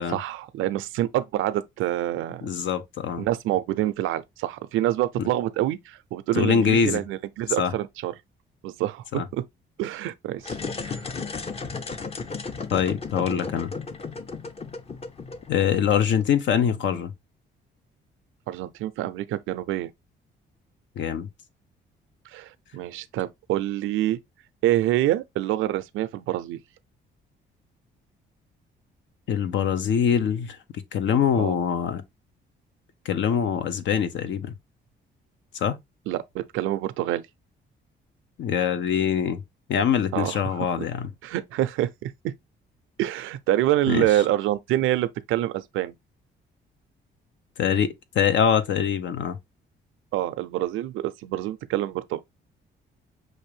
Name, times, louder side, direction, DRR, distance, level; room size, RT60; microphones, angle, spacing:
voice 1, 0.1-2.5 3.2-8.1 8.6-9.4 9.8-10.6 10.8-11.0 18.5-19.9 22.3-24.2 24.6-26.6 31.4-31.6 36.1-37.2 40.1-40.4 41.2-42.1 43.0-45.9 50.1-52.2, right 14 dB, 90° right, 0.5 m, -26 dB
voice 2, 2.4-3.2 5.2-5.3 6.3-7.0 7.6-7.7 9.1-9.2 12.7-13.7 15.5-17.1 21.0-21.3 29.3-32.0 33.0-34.5 35.5-35.8 38.4-39.4 39.7-41.1 43.9-44.1 47.6-49.4, left 8 dB, 70° left, 0.8 m, -24 dB
sound 1, 10.4-16.2, left 4 dB, 30° left, 0.7 m, -35 dB
6.1 x 2.6 x 3.2 m
cardioid pair, 90°, 20 cm